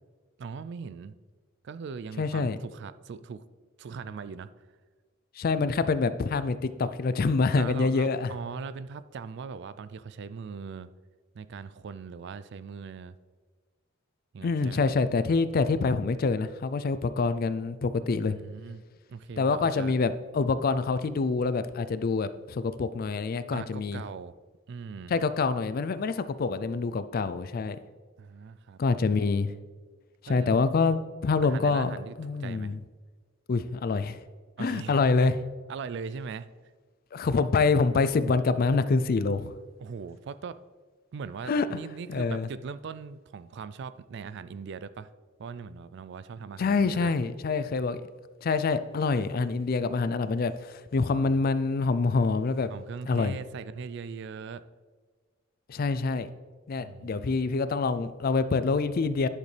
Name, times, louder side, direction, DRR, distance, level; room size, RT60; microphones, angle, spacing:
voice 1, 0.4-1.1 1.6-3.4 3.8-4.5 7.6-10.9 11.3-13.2 14.3-14.8 18.2-18.8 19.1-19.9 23.5-24.3 24.7-25.1 28.2-28.8 30.3-30.6 31.4-32.1 32.4-32.8 34.6-34.9 35.7-36.5 39.8-40.6 41.1-45.1 45.4-47.1 52.7-54.6 56.8-57.4, right 5 dB, 60° right, 15 dB, 0.3 m, -40 dB
voice 2, 2.2-2.6 5.4-8.3 14.4-18.4 19.4-24.0 25.1-27.8 28.8-29.5 30.2-32.8 33.5-34.2 34.6-35.4 37.1-39.5 41.5-41.7 42.1-42.5 46.6-48.0 48.4-52.7 53.1-53.4 55.7-56.3 56.7-59.3, left 4 dB, 45° left, 13 dB, 0.4 m, -26 dB
11.0 x 6.6 x 3.3 m, 1.4 s
head